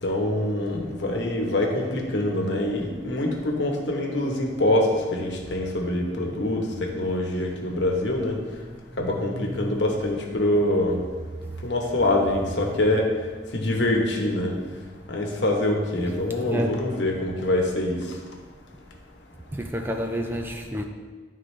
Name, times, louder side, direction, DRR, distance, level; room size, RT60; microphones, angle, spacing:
voice 1, 0.0-8.4 9.0-11.0 11.6-13.1 13.5-14.5 15.1-18.0, left 1 dB, 75° left, 1.1 m, -25 dB
voice 2, 8.4-9.8 11.4-11.6 14.5-14.9 16.0-17.0 18.2-18.4 19.5-20.8, equal, 10° right, 0.4 m, -32 dB
10.5 x 3.8 x 3.2 m
head